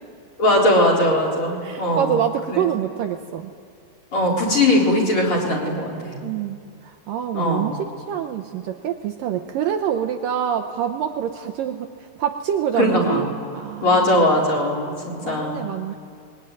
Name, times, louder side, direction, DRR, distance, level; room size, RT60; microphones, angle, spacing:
voice 1, 0.4-2.2 2.5-2.6 4.1-6.2 7.3-7.7 12.8-13.3 13.8-15.7, left 1 dB, 30° left, -1 dB, 4.6 m, -20 dB
voice 2, 1.6-3.5 6.2-11.9 12.2-14.5 15.2-15.9, right 9 dB, 80° right, 6 dB, 2.0 m, -26 dB
28.5 x 21.5 x 9.1 m, 2.4 s
omnidirectional pair, 5.0 m